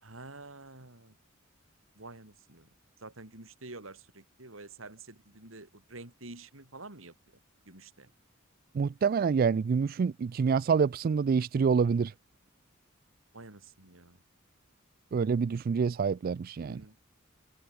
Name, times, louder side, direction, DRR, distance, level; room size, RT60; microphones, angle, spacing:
voice 1, 0.0-1.2 1.9-2.7 3.0-7.1 7.7-8.1 13.3-14.2 16.6-17.0, right 2 dB, 85° right, 4.4 m, -48 dB
voice 2, 8.7-12.1 15.1-16.8, right 6 dB, 45° right, 0.3 m, -27 dB
head